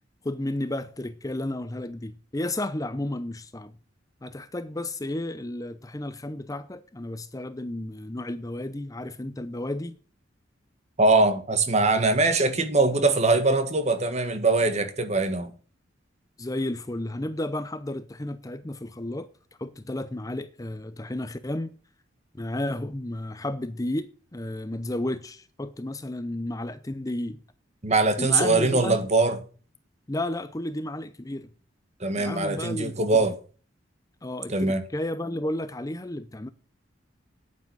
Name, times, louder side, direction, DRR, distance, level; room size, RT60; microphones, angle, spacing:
voice 1, 0.2-3.7 4.2-10.0 16.4-19.3 19.6-21.7 22.4-27.4 28.2-29.0 30.1-31.5 32.2-33.3 34.2-36.5, left 1 dB, 20° left, 0.6 m, -32 dB
voice 2, 11.0-15.5 27.8-29.4 32.0-33.3 34.5-34.8, right 3 dB, 35° right, 1.8 m, -22 dB
9.8 x 9.2 x 7.7 m
head